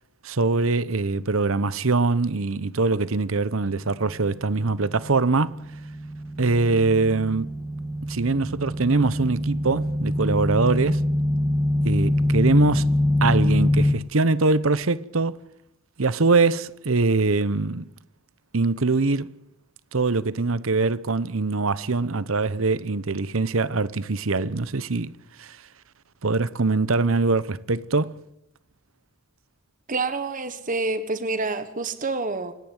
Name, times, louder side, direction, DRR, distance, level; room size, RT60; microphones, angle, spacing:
voice 1, 0.2-5.6 6.4-7.5 8.1-11.0 11.8-12.9 13.2-15.4 16.0-17.9 18.5-19.3 19.9-25.1 25.4-25.6 26.2-28.2, right 3 dB, 70° right, 0.9 m, -23 dB
sound 1, 4.4-13.9, left 1 dB, ahead, 1.7 m, -25 dB
voice 2, 29.9-32.5, right 3 dB, 40° right, 1.4 m, -27 dB
26.5 x 10.5 x 9.6 m
head